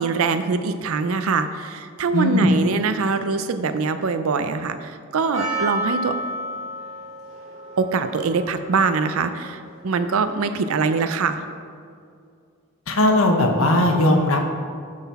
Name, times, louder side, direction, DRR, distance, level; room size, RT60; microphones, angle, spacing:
voice 1, 0.0-6.1 7.8-11.4, right 4 dB, 70° right, 10 dB, 0.5 m, -23 dB
voice 2, 2.1-2.5 12.9-14.5, left 1 dB, 65° left, 3 dB, 0.9 m, -18 dB
Percussion, 5.3-10.6, right 1 dB, 30° right, 1.7 m, -32 dB
11.0 x 4.0 x 4.2 m, 2.3 s
head